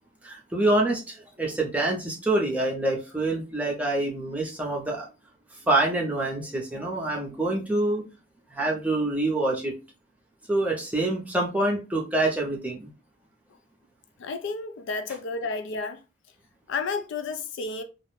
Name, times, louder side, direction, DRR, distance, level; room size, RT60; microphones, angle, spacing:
voice 1, 0.2-5.1 5.6-8.0 8.5-9.7 10.5-12.9, right 2 dB, 5° right, 0.5 m, -26 dB
voice 2, 14.2-16.0 16.7-17.8, left 4 dB, 65° left, 0.3 m, -31 dB
2.4 x 2.1 x 3.1 m
head